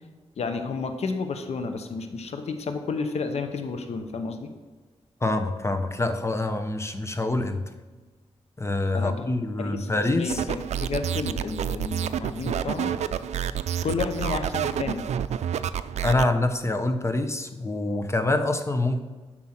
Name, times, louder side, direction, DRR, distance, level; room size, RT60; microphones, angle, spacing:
voice 1, 0.4-4.5 8.9-9.3 9.6-12.9 13.8-15.0, left 4 dB, 75° left, 7 dB, 1.0 m, -31 dB
voice 2, 5.2-7.6 8.6-10.4 16.0-19.0, left 2 dB, 25° left, 8 dB, 1.0 m, -26 dB
acid shit, 10.3-16.3, right 9 dB, 85° right, 0.4 m, -29 dB
9.7 x 6.2 x 4.5 m, 1.3 s
cardioid pair, 60°, 11 cm